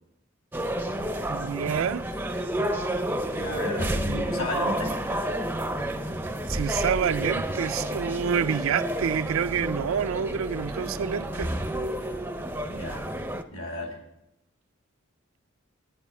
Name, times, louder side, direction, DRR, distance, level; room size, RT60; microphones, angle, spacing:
sound 1, 0.5-13.4, right 1 dB, 10° right, 0.5 m, -30 dB
voice 1, 1.3-2.1 4.0-4.2 6.5-11.5, right 7 dB, 70° right, 0.4 m, -28 dB
voice 2, 3.3-5.0 12.7-13.1 13.5-14.0, left 2 dB, 75° left, 2.6 m, -33 dB
9.7 x 9.3 x 5.4 m
head